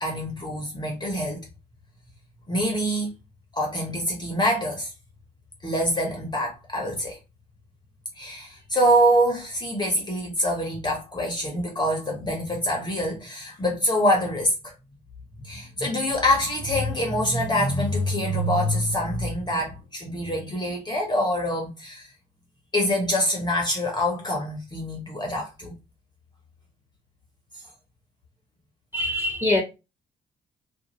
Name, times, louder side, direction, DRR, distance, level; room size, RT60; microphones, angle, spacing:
voice 1, 0.0-1.4 2.5-3.1 3.5-4.9 5.6-7.2 8.2-14.7 15.3-22.1 22.7-25.7, equal, 20° left, 0.8 m, -25 dB
voice 2, 28.9-29.6, left 2 dB, 10° right, 1.1 m, -23 dB
2.5 x 2.3 x 2.9 m
cardioid pair, 90°, 20 cm